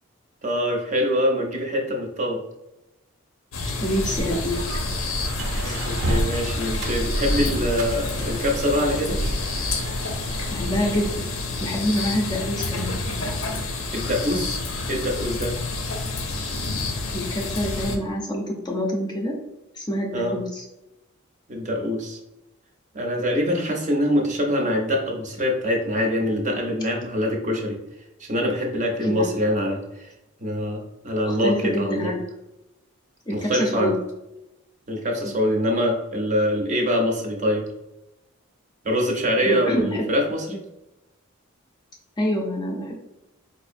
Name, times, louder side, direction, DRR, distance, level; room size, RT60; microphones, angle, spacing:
voice 1, 0.4-2.4 5.6-9.2 13.9-14.6 14.9-15.5 20.1-20.4 21.5-22.2 22.9-27.8 28.2-30.1 30.4-32.1 33.3-33.9 34.9-37.7 38.8-40.6, equal, 35° right, 1 dB, 0.6 m, -24 dB
sound 1, 3.5-18.0, left 3 dB, 80° left, 0.6 m, -29 dB
voice 2, 3.8-4.6 5.6-5.8 10.5-11.3 11.6-12.9 17.1-19.3 19.7-20.6 29.0-29.3 31.3-32.2 33.3-34.0 35.2-35.4 39.4-40.0 42.2-43.1, equal, 20° left, -1 dB, 0.4 m, -26 dB
sound 2, 3.9-11.1, right 1 dB, 85° right, 0.6 m, -29 dB
4.1 x 2.6 x 2.6 m, 0.93 s
head